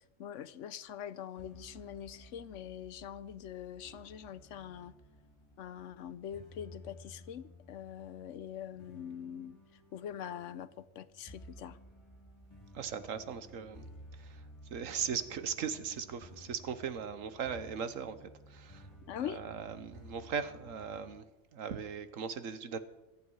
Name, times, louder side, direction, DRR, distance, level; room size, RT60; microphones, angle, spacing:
voice 1, 0.0-4.9 5.6-9.6 9.9-11.8 19.1-19.4, left 9 dB, 75° left, 1.0 m, -43 dB
sound 1, 1.4-21.2, equal, 20° left, 2.4 m, -55 dB
voice 2, 12.7-13.9 14.2-14.4 14.7-18.9 19.2-21.2 21.5-22.8, right 7 dB, 85° right, 1.4 m, -39 dB
25.5 x 8.7 x 4.8 m
omnidirectional pair, 1.3 m